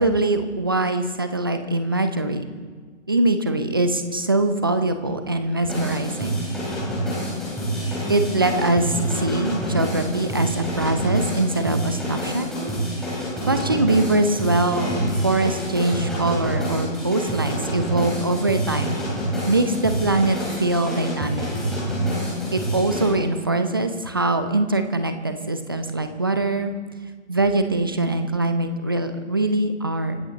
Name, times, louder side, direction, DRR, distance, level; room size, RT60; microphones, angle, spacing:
voice 1, 0.0-2.4 3.1-6.4 8.1-12.5 13.5-19.0 19.5-21.5 22.5-26.7 27.3-30.2, right 2 dB, 20° right, 8 dB, 0.6 m, -23 dB
sound 1, 5.6-23.1, equal, ahead, 3.5 m, -27 dB
25.5 x 12.5 x 3.9 m, 1.5 s
figure-of-eight pair, 150°, 39 cm